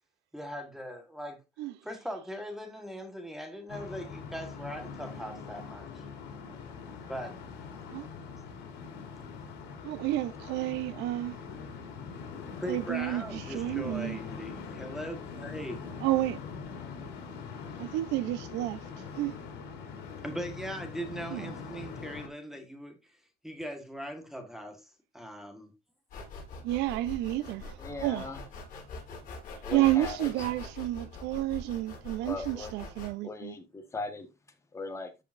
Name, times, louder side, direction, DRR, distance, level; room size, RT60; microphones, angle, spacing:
voice 1, 0.3-1.4 1.8-5.9 7.1-7.4 12.6-15.8 20.2-23.0 23.4-24.8 25.1-25.7, equal, ahead, 1.5 m, -40 dB
sound 1, 3.7-22.3, left 5 dB, 80° left, 3.0 m, -43 dB
voice 2, 9.8-11.4 12.7-14.2 16.0-16.4 17.8-18.8 19.2-19.3 21.3-21.5 26.6-27.7 28.0-28.3 29.7-33.6, right 15 dB, 90° right, 0.8 m, -30 dB
sound 2, 26.1-33.1, left 3 dB, 50° left, 5.9 m, -43 dB
voice 3, 27.8-28.4 29.6-30.3 32.2-32.7 33.2-34.3 34.7-35.1, left 3 dB, 15° left, 1.5 m, -39 dB
14.0 x 5.0 x 2.6 m
cardioid pair, 145°, 17 cm